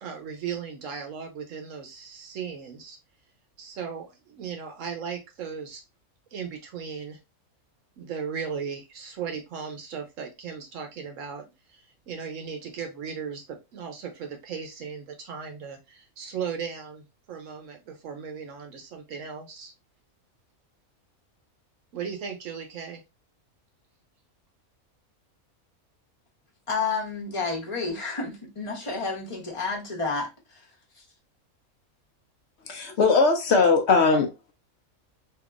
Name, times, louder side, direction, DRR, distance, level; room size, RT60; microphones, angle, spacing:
voice 1, 0.0-3.0 3.6-5.8 6.3-7.2 8.0-19.7 21.9-23.0, right 6 dB, 70° right, 1.0 m, -37 dB
voice 2, 26.7-30.6, left 4 dB, 25° left, 0.9 m, -30 dB
voice 3, 32.7-34.3, left 4 dB, 60° left, 0.9 m, -20 dB
3.5 x 2.8 x 2.4 m
omnidirectional pair, 1.5 m